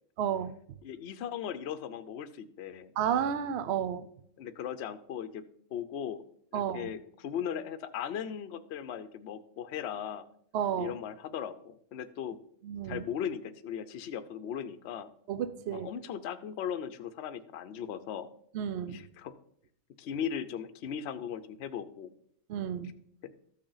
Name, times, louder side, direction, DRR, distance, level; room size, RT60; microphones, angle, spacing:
voice 1, 0.2-0.6 3.0-4.1 6.5-6.9 10.5-11.0 12.6-13.0 15.3-15.9 18.5-19.0 22.5-22.9, right 9 dB, 60° right, 0.8 m, -32 dB
voice 2, 0.8-2.9 4.4-6.2 6.5-10.2 10.8-12.4 12.8-15.1 15.7-18.3 18.9-19.4 20.0-22.1 23.2-23.3, left 8 dB, 60° left, 0.8 m, -38 dB
14.0 x 6.4 x 3.9 m
omnidirectional pair, 1.5 m